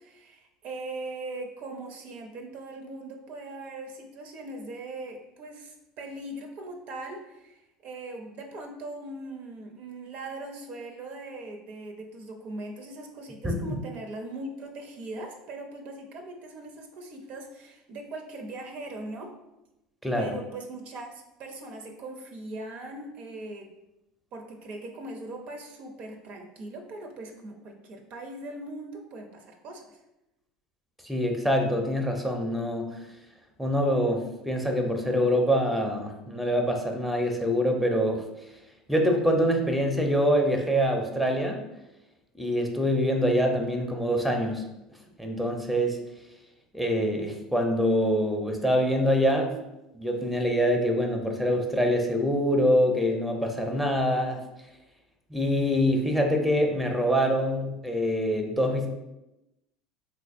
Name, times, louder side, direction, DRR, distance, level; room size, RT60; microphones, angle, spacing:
voice 1, 0.0-19.3 20.1-23.7 24.3-30.0, right 2 dB, 50° right, 3 dB, 0.5 m, -40 dB
voice 2, 13.4-13.8 20.0-20.3 31.0-33.0 33.6-38.2 38.9-41.6 42.4-44.6 45.2-46.0 46.7-49.5 49.9-54.4 55.3-58.9, equal, ahead, 3 dB, 0.6 m, -25 dB
3.7 x 2.5 x 2.4 m, 0.94 s
hypercardioid pair, 75°, 3 cm